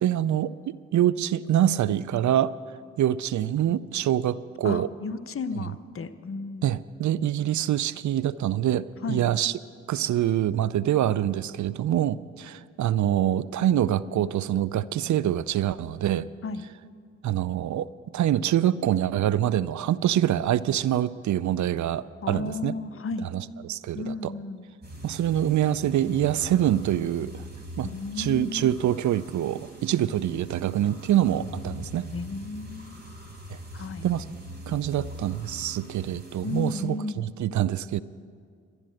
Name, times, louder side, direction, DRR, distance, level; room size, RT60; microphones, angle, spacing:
voice 1, 0.0-2.5 3.0-4.9 5.6-5.7 6.6-9.5 9.9-16.3 17.2-22.7 23.3-24.3 25.0-27.4 27.8-27.9 28.2-32.1 34.0-34.2 34.7-38.0, right 11 dB, 65° right, 18 dB, 0.5 m, -25 dB
voice 2, 4.6-6.7 9.0-9.2 16.4-16.6 22.2-23.3 23.9-24.7 27.8-28.7 32.1-33.0 33.7-34.0 36.4-37.3, left 3 dB, 45° left, 12 dB, 0.7 m, -33 dB
sound 1, 24.8-36.8, equal, 30° right, 4.2 m, -42 dB
12.0 x 11.0 x 7.7 m, 2.1 s
supercardioid pair, 50°, 32 cm